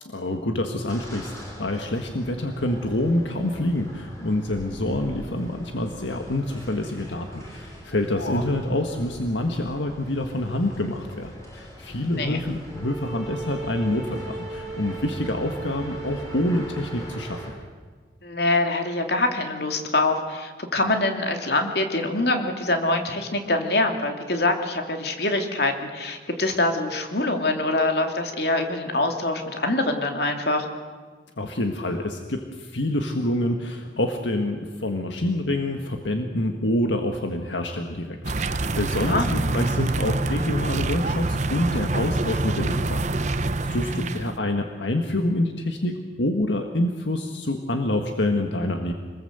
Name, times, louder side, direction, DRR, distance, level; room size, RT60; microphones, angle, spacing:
voice 1, 0.0-17.4 31.4-48.9, left 1 dB, 80° left, 4 dB, 1.7 m, -27 dB
sound 1, 0.9-17.5, equal, 15° left, 5.8 m, -42 dB
sound 2, 12.6-17.6, right 4 dB, ahead, 5.6 m, -37 dB
voice 2, 18.2-30.7 39.0-39.3 43.9-44.1, left 2 dB, 60° left, 4 dB, 2.8 m, -24 dB
sound 3, 38.2-44.4, right 2 dB, 40° right, 0.8 m, -26 dB
27.0 x 20.5 x 8.1 m, 1.5 s
head